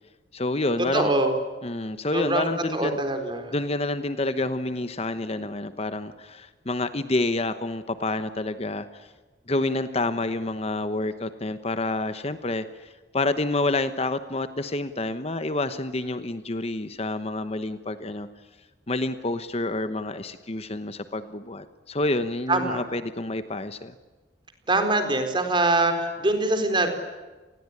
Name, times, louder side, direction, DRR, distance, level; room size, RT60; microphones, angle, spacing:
voice 1, 0.3-1.2 1.6-3.0 3.5-9.1 9.5-18.3 18.9-23.9, left 2 dB, 35° left, 11 dB, 1.0 m, -28 dB
voice 2, 0.9-1.3 2.1-3.5 22.5-22.8 24.7-26.9, right 2 dB, 25° right, 7 dB, 4.1 m, -24 dB
28.5 x 20.5 x 9.8 m, 1.3 s
head